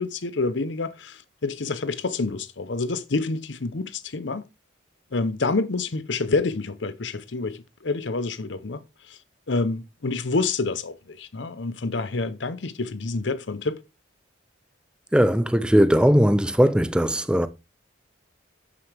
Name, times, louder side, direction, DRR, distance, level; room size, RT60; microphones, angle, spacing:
voice 1, 0.0-4.4 5.1-8.8 9.1-9.2 9.5-13.8, left 3 dB, 65° left, 0.8 m, -28 dB
voice 2, 15.1-17.5, equal, 5° right, 0.6 m, -19 dB
8.9 x 7.7 x 3.4 m
head